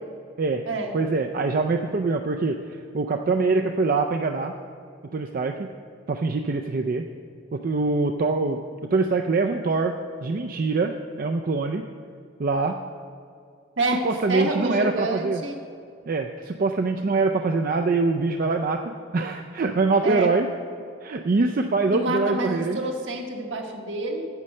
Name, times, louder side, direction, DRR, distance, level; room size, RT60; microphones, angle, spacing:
voice 1, 0.9-4.5 5.1-5.7 6.1-7.0 7.5-8.6 8.9-11.8 12.4-12.8 13.9-15.4 16.1-20.5 21.0-22.8, right 3 dB, 45° right, 5 dB, 0.4 m, -24 dB
voice 2, 14.3-15.6 20.0-20.3 21.9-24.3, right 2 dB, 70° right, 2 dB, 1.3 m, -27 dB
9.6 x 7.3 x 6.5 m, 2.4 s
head